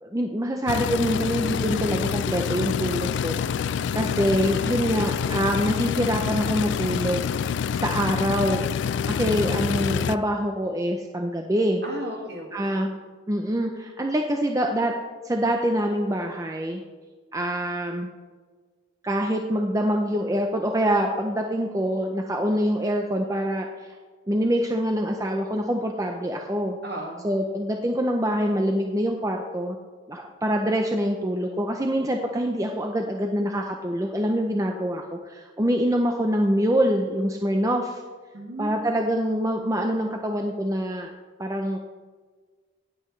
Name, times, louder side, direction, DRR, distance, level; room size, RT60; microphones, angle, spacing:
voice 1, 0.0-7.3 7.8-8.6 9.1-11.8 12.5-12.9 13.3-14.9 15.2-16.8 17.3-18.1 19.0-24.0 24.3-26.8 27.2-29.8 30.1-38.0 38.6-41.1 41.4-41.8, equal, 15° right, 3 dB, 0.5 m, -25 dB
sound 1, 0.7-10.2, left 7 dB, 65° left, 0.3 m, -27 dB
voice 2, 11.8-12.7 26.8-27.2 38.3-38.8, right 1 dB, 55° right, 1 dB, 1.9 m, -35 dB
18.0 x 7.9 x 3.2 m, 1.5 s
head